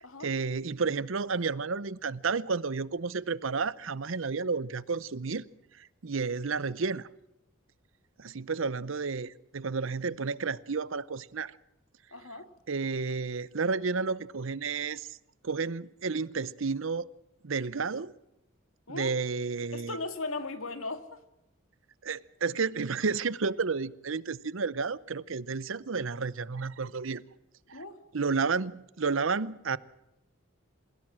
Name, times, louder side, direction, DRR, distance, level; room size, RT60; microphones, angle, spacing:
voice 1, 0.2-5.4 5.8-7.1 8.2-11.6 12.7-15.2 15.4-17.0 17.4-18.1 18.9-20.0 22.0-27.2 27.7-27.8 28.1-29.8, right 4 dB, 70° right, 0.7 m, -31 dB
voice 2, 12.1-12.5 18.9-19.1 19.7-21.2 27.7-28.0, left 3 dB, 85° left, 2.1 m, -37 dB
27.5 x 16.5 x 7.4 m
head